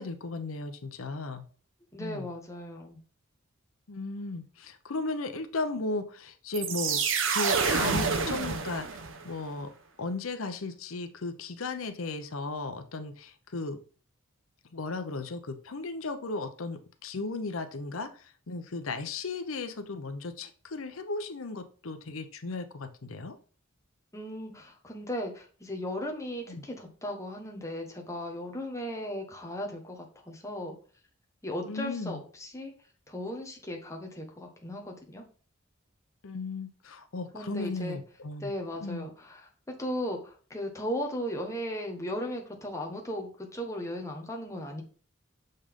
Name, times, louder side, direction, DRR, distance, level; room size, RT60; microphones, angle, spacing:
voice 1, 0.0-1.4 2.0-2.3 3.9-7.0 7.3-8.9 9.2-9.7 10.0-13.8 14.7-23.4 26.5-26.6 31.7-32.2 36.2-38.5 38.8-39.1, left 3 dB, 90° left, 8 dB, 0.8 m, -35 dB
voice 2, 1.9-3.0 24.1-30.7 31.4-32.7 33.1-35.2 37.3-38.0 38.4-44.8, equal, 15° left, 1 dB, 1.2 m, -36 dB
sound 1, 6.5-9.3, right 5 dB, 65° right, 1.0 m, -28 dB
6.6 x 5.5 x 3.6 m, 0.40 s
head